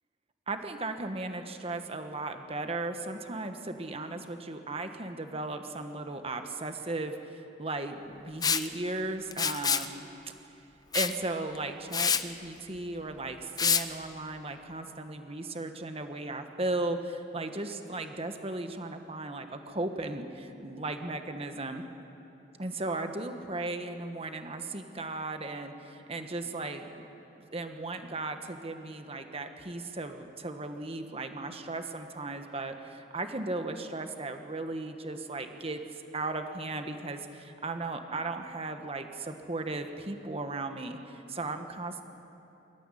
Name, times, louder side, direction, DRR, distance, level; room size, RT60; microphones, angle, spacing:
voice 1, 0.5-10.1 10.9-21.9 22.6-27.0 27.5-42.0, right 2 dB, 30° right, 6 dB, 1.4 m, -36 dB
Liquid, 8.4-8.7 9.3-9.9 10.9-11.2 11.6-11.7 11.9-12.2 13.6-13.8, left 6 dB, 20° left, 0.7 m, -26 dB
23.5 x 14.0 x 9.9 m, 3.0 s
head